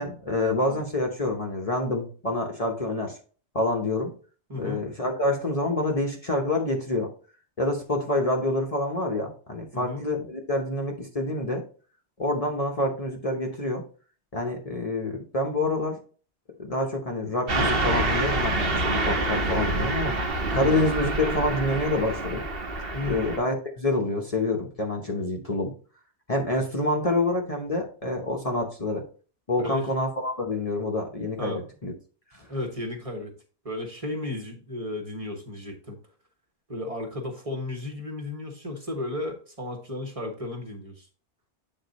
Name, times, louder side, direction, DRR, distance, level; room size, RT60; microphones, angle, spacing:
voice 1, 0.0-3.2 3.5-4.1 4.6-7.1 7.6-11.6 12.2-13.8 14.3-16.0 16.6-20.2 20.5-22.4 23.1-25.7 26.3-29.0 29.5-31.9 32.3-32.5, left 2 dB, 35° left, 1 dB, 1.0 m, -27 dB
voice 2, 4.5-4.8 9.7-10.0 20.5-20.8 22.9-23.3 29.6-29.9 31.4-31.6 32.5-33.3 33.6-36.0 36.7-41.1, left 2 dB, 30° right, 2 dB, 1.4 m, -34 dB
Car passing by / Truck, 17.5-23.4, right 2 dB, 55° right, 1.3 m, -27 dB
8.1 x 3.8 x 4.0 m, 0.39 s
omnidirectional pair, 1.2 m